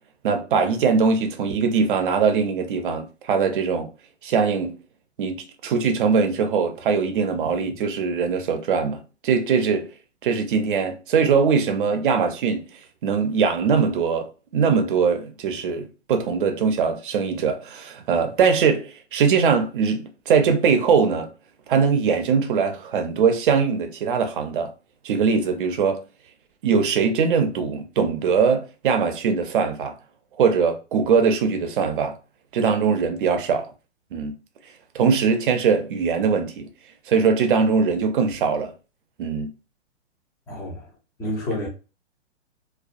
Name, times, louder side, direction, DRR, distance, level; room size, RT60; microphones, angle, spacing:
voice 1, 0.2-3.9 4.2-4.8 5.2-9.9 10.2-12.6 13.0-21.3 21.7-24.7 25.0-26.0 26.6-29.9 30.4-32.2 32.5-33.7 34.1-34.3 34.9-36.7 37.1-38.7 39.2-39.5, right 5 dB, 45° right, 0.6 m, -21 dB
voice 2, 40.5-40.9 41.2-41.7, left 1 dB, 10° left, 0.5 m, -29 dB
2.3 x 2.2 x 2.4 m
hypercardioid pair, 125°, 35 cm